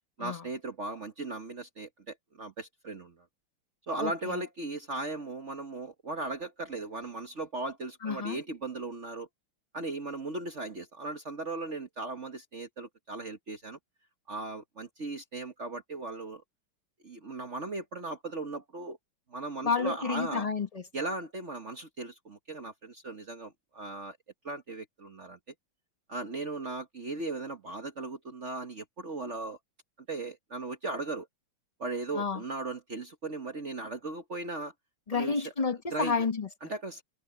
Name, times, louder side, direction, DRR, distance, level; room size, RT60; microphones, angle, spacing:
voice 1, 0.2-3.3 3.9-9.3 9.7-13.8 14.3-16.4 17.0-19.0 19.3-20.5 20.9-24.2 24.4-25.4 26.1-29.6 30.1-31.3 31.8-34.7 35.1-35.5 35.9-36.2 36.6-37.0, right 2 dB, 40° right, 1.3 m, -37 dB
voice 2, 4.0-4.4 8.0-8.4 19.6-20.8 32.1-32.4 35.1-36.5, left 5 dB, 50° left, 0.4 m, -30 dB
omnidirectional pair, 2.4 m